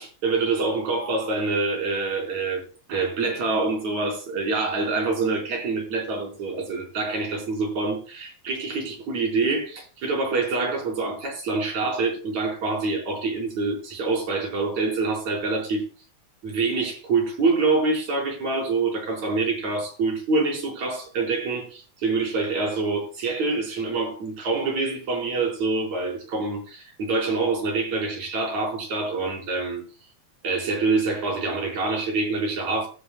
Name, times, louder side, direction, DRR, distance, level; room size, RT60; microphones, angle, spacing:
voice 1, 0.0-2.6 2.9-15.8 16.4-29.8 30.4-32.9, right 3 dB, 75° right, 5.8 m, -26 dB
16.5 x 14.0 x 2.2 m
omnidirectional pair, 3.3 m